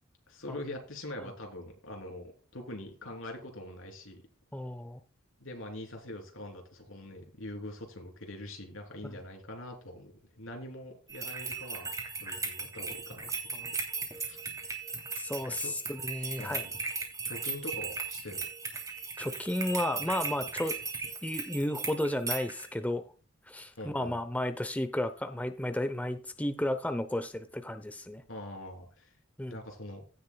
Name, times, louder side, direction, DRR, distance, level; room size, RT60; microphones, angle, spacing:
voice 1, 0.3-4.2 5.4-11.9 12.2-13.3 14.1-14.4 15.6-15.7 16.4-16.7 17.2-18.4 23.8-24.2 28.3-29.1 29.5-30.0, left 1 dB, 75° left, 3 dB, 3.4 m, -43 dB
voice 2, 4.5-5.0 13.6-13.7 15.2-16.6 19.2-20.7 21.2-23.0 23.5-28.2 29.4-29.6, left 1 dB, 5° left, 9 dB, 0.7 m, -33 dB
sound 1, 11.1-22.7, right 4 dB, 15° right, 3.0 m, -37 dB
16.5 x 7.3 x 2.3 m, 0.36 s
head